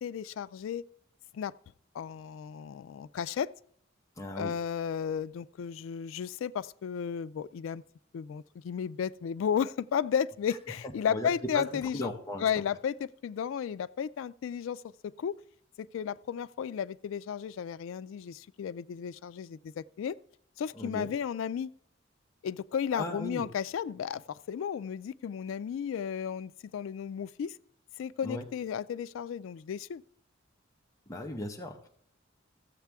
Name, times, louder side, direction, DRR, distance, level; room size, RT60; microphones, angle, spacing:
voice 1, 0.0-0.8 1.3-1.5 1.9-3.5 4.4-7.8 8.1-12.1 12.4-12.9 13.2-14.8 15.2-15.4 15.8-20.2 20.6-21.7 22.4-27.6 28.0-30.0, left 7 dB, 75° left, 0.3 m, -33 dB
voice 2, 4.2-4.6 11.1-11.6 11.9-12.5 20.7-21.1 22.9-23.4 28.2-28.4 31.1-31.9, left 1 dB, 15° left, 0.8 m, -37 dB
15.0 x 7.3 x 3.5 m
head